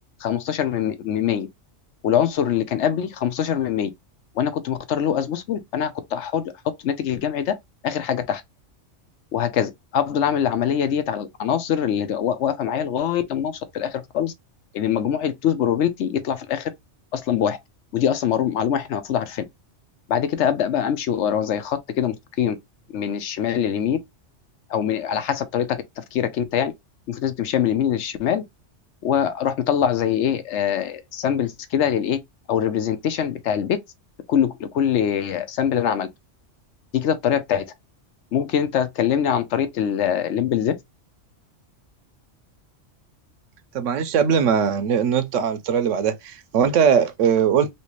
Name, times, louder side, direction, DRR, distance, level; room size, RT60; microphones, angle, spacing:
voice 1, 0.2-1.5 2.0-3.9 4.4-6.4 6.8-7.5 7.8-8.4 9.3-14.3 14.7-16.7 17.1-17.6 17.9-19.4 20.1-22.6 22.9-24.0 24.7-25.8 26.1-26.7 27.1-28.4 29.0-32.2 32.5-33.7 34.3-36.1 36.9-37.6 38.3-40.7, left 9 dB, 75° left, 0.9 m, -23 dB
voice 2, 43.7-47.7, right 7 dB, 80° right, 1.0 m, -20 dB
3.2 x 2.9 x 3.0 m
omnidirectional pair, 1.3 m